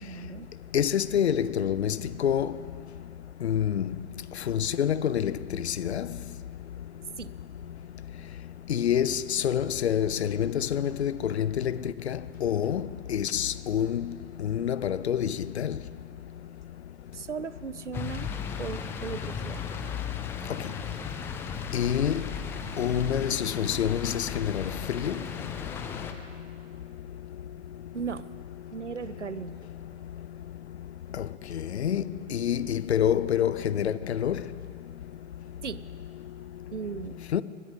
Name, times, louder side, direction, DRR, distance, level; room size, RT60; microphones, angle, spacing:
voice 1, 0.0-0.5 7.2-7.4 17.1-18.3 18.6-19.6 27.9-28.3 28.7-29.6 35.6-35.9 36.7-37.2, right 6 dB, 90° right, 0.6 m, -37 dB
voice 2, 0.7-2.5 3.4-3.9 4.5-6.1 8.7-11.8 12.1-14.1 14.4-15.8 21.7-22.2 22.8-25.2 31.5-32.0 32.3-34.4 37.3-37.4, left 9 dB, 70° left, 0.6 m, -27 dB
sound 1, 17.9-26.1, left 7 dB, 5° left, 0.3 m, -36 dB
21.0 x 17.0 x 3.7 m
figure-of-eight pair, 105°, 35 cm